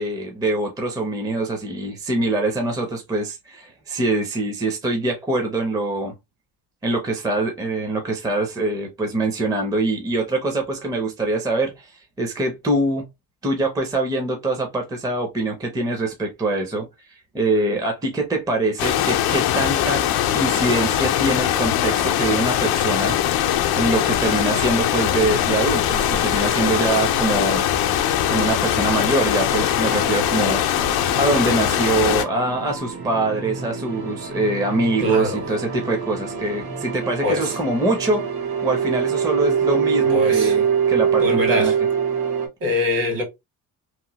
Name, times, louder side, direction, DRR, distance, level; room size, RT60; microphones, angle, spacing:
voice 1, 0.0-6.1 6.8-11.9 12.2-13.0 13.4-16.9 17.3-20.0 20.3-23.2 23.7-27.7 28.3-38.3 38.6-41.7, right 2 dB, 10° right, 0.4 m, -24 dB
sound 1, 18.8-32.2, left 11 dB, 85° left, 0.5 m, -21 dB
sound 2, 25.6-32.9, right 2 dB, 45° right, 0.7 m, -39 dB
sound 3, 26.6-42.5, right 7 dB, 85° right, 1.0 m, -26 dB
voice 2, 35.0-35.4 37.2-37.6 39.9-40.6 41.2-41.7 42.6-43.2, left 2 dB, 65° right, 1.6 m, -23 dB
2.9 x 2.1 x 2.8 m
cardioid pair, 170°, 36 cm